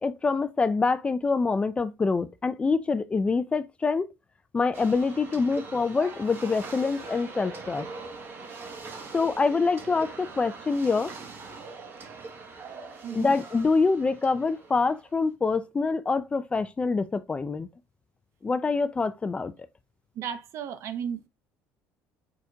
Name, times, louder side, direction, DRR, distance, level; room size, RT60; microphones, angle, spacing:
voice 1, 0.0-4.1 4.5-7.9 9.1-11.1 13.1-17.7 18.4-19.5, left 4 dB, 20° left, 0.4 m, -25 dB
sound 1, 4.7-15.2, right 3 dB, 40° right, 1.2 m, -42 dB
voice 2, 20.2-21.3, right 8 dB, 55° right, 0.8 m, -34 dB
5.0 x 4.2 x 2.3 m
cardioid pair, 115°, 6 cm